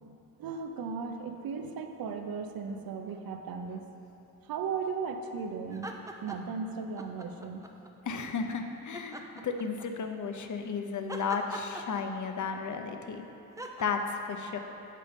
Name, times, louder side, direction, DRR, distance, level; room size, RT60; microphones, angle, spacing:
voice 1, 0.0-3.8 4.5-5.9 6.2-7.6, right 5 dB, 75° right, 6 dB, 0.6 m, -36 dB
sound 1, 5.7-6.6 7.0-7.9 8.9-10.1 11.1-12.5 13.6-13.8, right 1 dB, 10° right, 0.6 m, -42 dB
voice 2, 8.0-13.2 13.8-14.6, left 5 dB, 55° left, 5 dB, 0.7 m, -34 dB
7.6 x 5.0 x 5.2 m, 2.9 s
cardioid pair, 45°, 36 cm